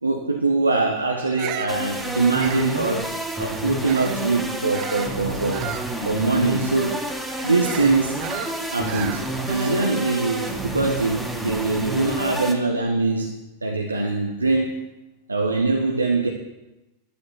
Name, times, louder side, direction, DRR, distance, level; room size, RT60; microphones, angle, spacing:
voice 1, 0.0-3.1 3.4-5.7 6.0-7.0 7.4-8.2 8.7-13.3 13.6-14.8 15.3-16.3, right 3 dB, 80° right, 2 dB, 1.2 m, -23 dB
Bird vocalization bird call bird song, 1.2-4.3 4.7-10.0, right 10 dB, 40° right, 1.1 m, -36 dB
sound 1, 1.7-12.5, right 1 dB, 5° right, 2.4 m, -29 dB
12.0 x 11.5 x 5.8 m, 1.0 s
figure-of-eight pair, 90°, 0 cm